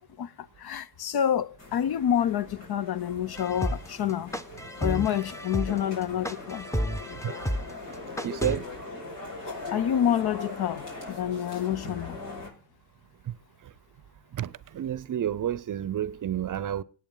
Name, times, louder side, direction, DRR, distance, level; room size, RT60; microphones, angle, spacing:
voice 1, 0.2-4.3 4.8-6.7 9.7-12.2, left 10 dB, 50° left, 0.7 m, -28 dB
sound 1, 1.6-12.5, left 2 dB, 85° left, 5.4 m, -41 dB
sound 2, 3.4-8.6, equal, 5° left, 0.8 m, -31 dB
voice 2, 8.2-8.7 13.2-13.3 13.6-13.7 14.3-16.8, right 10 dB, 40° right, 0.7 m, -30 dB
18.0 x 8.4 x 3.9 m
supercardioid pair, 60°, 49 cm